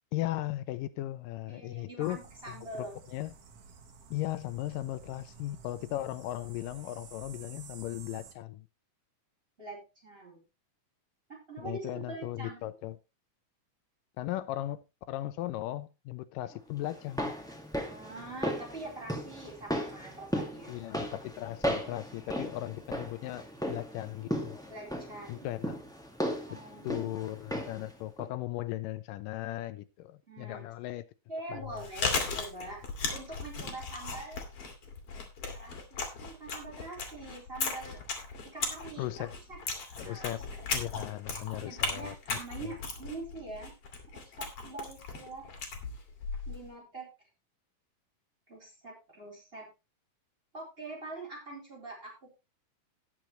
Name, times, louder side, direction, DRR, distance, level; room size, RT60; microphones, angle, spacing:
voice 1, 0.1-2.2 2.5-3.3 4.1-8.7 11.6-13.0 14.2-14.8 15.1-17.3 20.7-24.6 25.3-25.8 26.8-31.0 31.5-31.8 39.0-39.3 40.0-40.4 40.7-42.7, left 15 dB, 85° left, 2.3 m, -37 dB
voice 2, 1.5-3.0 9.6-10.4 11.3-12.6 17.8-20.7 24.7-25.5 26.5-27.1 30.3-30.7 31.3-32.8 33.1-34.5 35.5-38.0 38.5-39.6 40.0-40.3 41.6-43.7 44.1-45.5 46.5-47.1 48.5-49.7 50.5-52.3, right 2 dB, 15° right, 4.4 m, -44 dB
sound 1, 2.0-8.3, right 6 dB, 55° right, 2.3 m, -52 dB
sound 2, 16.9-27.9 28.2-28.3, equal, ahead, 0.9 m, -36 dB
Chewing mastication, 31.6-46.7, left 4 dB, 50° left, 3.0 m, -37 dB
18.0 x 6.3 x 3.1 m
omnidirectional pair, 3.8 m